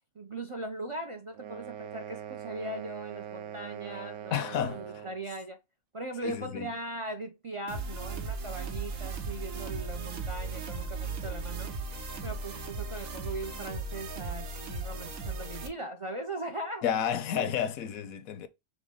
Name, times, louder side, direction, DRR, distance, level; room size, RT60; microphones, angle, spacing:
voice 1, 0.2-5.6 5.9-11.7 12.2-16.8 17.3-17.5, right 2 dB, 50° right, 0.3 m, -39 dB
sound 1, 1.3-5.2, right 9 dB, 65° right, 0.9 m, -42 dB
voice 2, 4.3-5.1 6.2-6.7 16.8-18.5, left 9 dB, 90° left, 1.1 m, -31 dB
sound 2, 7.7-15.7, right 3 dB, 85° right, 1.4 m, -37 dB
6.2 x 2.2 x 3.6 m
omnidirectional pair, 1.4 m